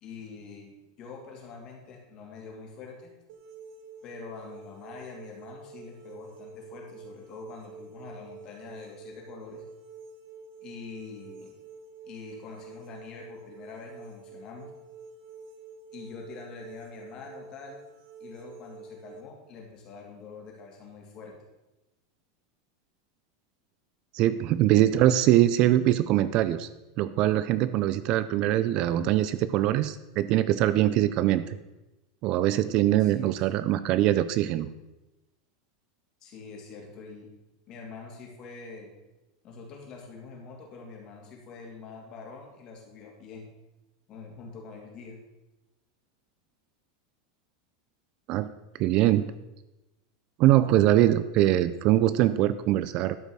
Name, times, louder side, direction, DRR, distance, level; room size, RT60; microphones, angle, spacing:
voice 1, 0.0-3.1 4.0-9.6 10.6-11.5 12.0-14.7 15.9-17.8 18.2-21.3 32.9-33.5 36.2-37.3 37.7-38.9 39.4-43.4 44.1-45.2, left 4 dB, 35° left, 0 dB, 2.8 m, -45 dB
sound 1, 3.3-19.2, right 4 dB, 65° right, 1.7 m, -48 dB
voice 2, 24.1-26.7 27.0-31.6 32.2-34.7 48.3-48.5 48.8-49.3 50.4-53.2, right 13 dB, 40° right, 14 dB, 0.4 m, -23 dB
12.5 x 5.4 x 6.2 m, 1.0 s
supercardioid pair, 155°, 2 cm